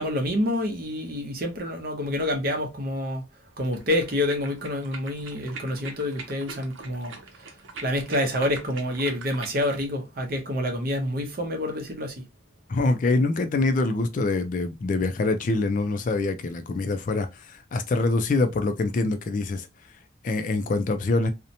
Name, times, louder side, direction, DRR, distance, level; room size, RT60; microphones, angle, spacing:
voice 1, 0.0-3.2 3.6-12.2, left 1 dB, 50° right, 0.7 m, -28 dB
sound 1, 3.6-9.8, right 4 dB, 90° right, 0.6 m, -42 dB
voice 2, 12.7-19.7 20.2-21.3, left 3 dB, 40° left, 0.3 m, -25 dB
2.7 x 2.1 x 2.6 m
head